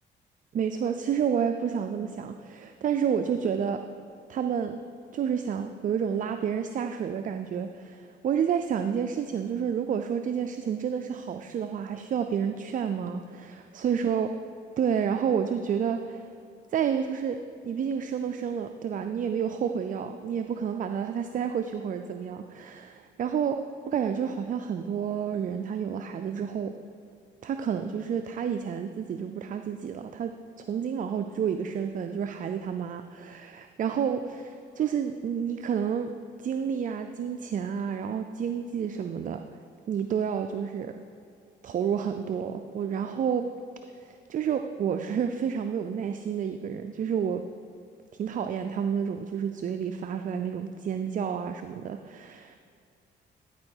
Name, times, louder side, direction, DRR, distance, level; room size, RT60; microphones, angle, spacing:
voice 1, 0.5-3.8 4.3-4.8 5.1-14.3 14.8-16.3 16.7-23.6 23.9-26.8 27.4-36.1 36.4-39.4 39.9-41.0 41.6-43.5 43.9-47.4 48.1-52.6, right 7 dB, 40° right, 7 dB, 0.4 m, -30 dB
11.5 x 4.7 x 4.5 m, 2.4 s
cardioid pair, 90°, 20 cm